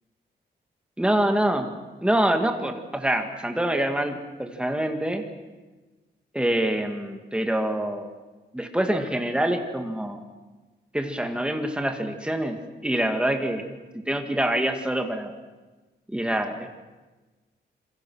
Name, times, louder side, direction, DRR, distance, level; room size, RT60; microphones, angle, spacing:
voice 1, 1.0-1.7 2.0-5.2 6.3-8.1 8.5-10.2 10.9-12.6 12.8-13.6 13.9-15.3 16.1-16.7, right 1 dB, 5° right, 5 dB, 2.0 m, -25 dB
27.5 x 23.0 x 6.3 m, 1.2 s
wide cardioid pair, 170°, 19 cm